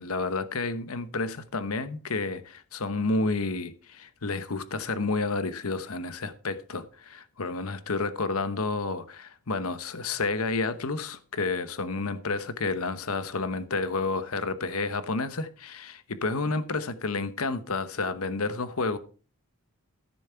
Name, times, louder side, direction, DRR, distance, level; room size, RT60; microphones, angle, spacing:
voice 1, 0.0-19.0, left 3 dB, 85° left, 1.0 m, -30 dB
14.0 x 7.2 x 4.5 m
head